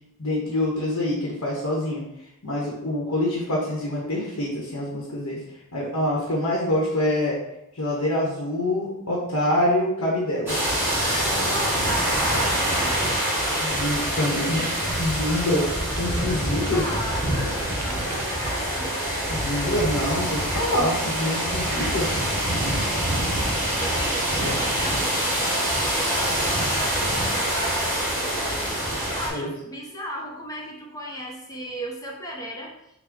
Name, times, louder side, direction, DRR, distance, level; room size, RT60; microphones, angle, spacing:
voice 1, 0.2-2.0 2.4-5.4 5.7-7.4 7.7-10.6 13.6-15.6 16.0-16.8 19.3-22.1 24.3-24.6 29.3-29.5, left 1 dB, 75° left, -3 dB, 1.1 m, -25 dB
Waves - Beach sounds, 10.5-29.3, right 1 dB, 10° right, 1.5 m, -25 dB
voice 2, 11.4-13.2 16.7-19.0 23.8-32.7, equal, 15° left, -1 dB, 0.8 m, -35 dB
sound 1, 11.5-16.8 17.2-18.5, right 3 dB, 75° right, 0.7 m, -42 dB
6.1 x 2.3 x 3.7 m, 0.83 s
head